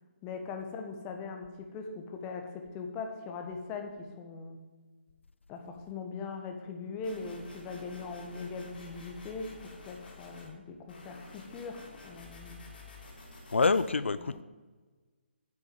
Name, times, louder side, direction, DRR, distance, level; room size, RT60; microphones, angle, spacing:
voice 1, 0.2-4.6 5.5-12.6 14.2-14.4, left 4 dB, 20° left, 4 dB, 1.4 m, -41 dB
sound 1, 7.0-10.5 10.9-13.9, left 3 dB, 55° left, 3.5 m, -50 dB
voice 2, 13.5-14.4, left 4 dB, 80° left, 14 dB, 0.5 m, -26 dB
9.4 x 7.2 x 7.7 m, 1.3 s
figure-of-eight pair, 145°, 6 cm